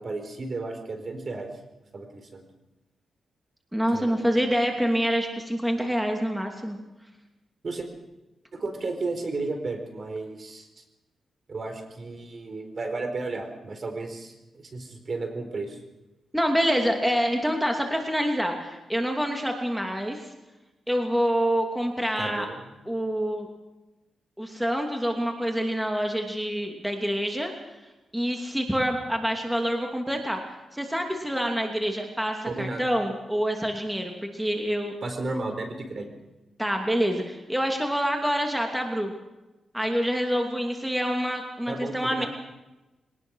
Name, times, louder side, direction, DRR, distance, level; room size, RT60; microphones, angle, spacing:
voice 1, 0.0-1.5 1.9-2.4 3.9-4.2 7.6-7.9 8.5-10.8 11.5-15.8 22.2-22.6 32.4-32.8 35.0-36.1 41.7-42.3, right 3 dB, 45° right, 6 dB, 4.5 m, -33 dB
voice 2, 3.7-6.8 16.3-20.2 20.9-22.5 22.9-23.5 24.4-27.5 28.1-30.4 30.7-35.0 36.6-39.1 39.7-42.3, equal, 5° right, 3 dB, 2.8 m, -26 dB
22.5 x 19.0 x 6.4 m, 1.0 s
cardioid pair, 90°, 0 cm